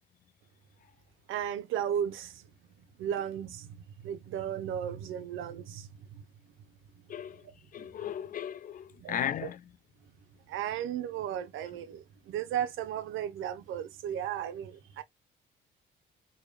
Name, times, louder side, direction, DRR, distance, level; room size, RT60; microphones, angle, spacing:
voice 1, 1.3-2.5 3.0-6.3 7.8-7.9 9.0-9.5 10.5-15.0, right 9 dB, 85° right, 0.6 m, -35 dB
voice 2, 7.1-7.4 7.7-9.6, left 9 dB, 45° left, 0.4 m, -36 dB
3.5 x 2.2 x 3.2 m
cardioid pair, 90°, 20 cm